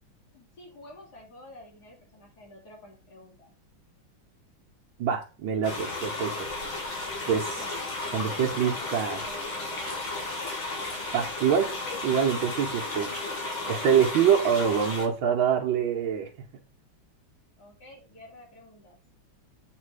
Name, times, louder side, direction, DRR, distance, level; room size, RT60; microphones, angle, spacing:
voice 1, 0.3-3.5 7.6-9.6 17.6-19.0, left 1 dB, 50° left, -1 dB, 3.4 m, -49 dB
voice 2, 5.0-6.3 7.3-7.6 8.1-9.2 11.1-11.7 12.0-13.1 13.7-16.3, right 7 dB, 70° right, 0 dB, 1.6 m, -25 dB
sound 1, 5.6-15.1, left 2 dB, 75° left, 3.4 m, -34 dB
8.3 x 3.4 x 4.8 m, 0.34 s
omnidirectional pair, 2.2 m